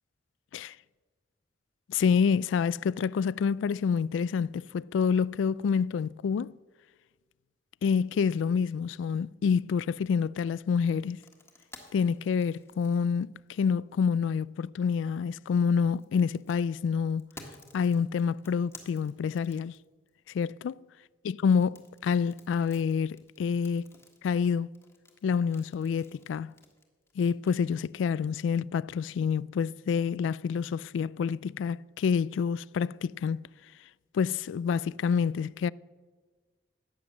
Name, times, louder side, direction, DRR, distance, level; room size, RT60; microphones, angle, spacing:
voice 1, 1.9-6.5 7.8-11.2 11.9-17.3 17.7-19.7 20.3-20.8 21.2-23.9 24.2-24.7 25.2-26.5 27.2-33.4 34.1-35.7, left 6 dB, 90° left, 0.3 m, -27 dB
sound 1, 11.0-13.9 15.3-20.1 21.5-28.0, left 2 dB, 15° left, 1.5 m, -53 dB
14.5 x 9.7 x 7.1 m
head